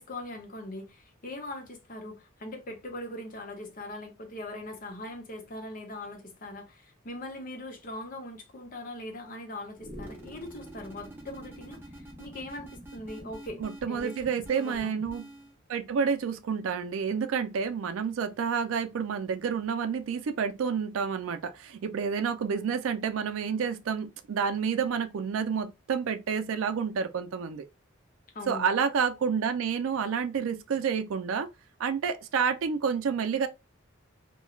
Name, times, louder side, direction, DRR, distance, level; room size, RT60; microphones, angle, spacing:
voice 1, 0.0-13.6 13.9-14.9 28.3-28.7, left 1 dB, 40° left, 0.6 m, -41 dB
sound 1, 9.8-15.5, right 1 dB, 10° right, 0.7 m, -46 dB
voice 2, 13.6-15.2 15.7-27.6 28.5-31.5 31.8-33.5, right 6 dB, 75° right, 0.4 m, -29 dB
3.0 x 2.2 x 2.3 m
head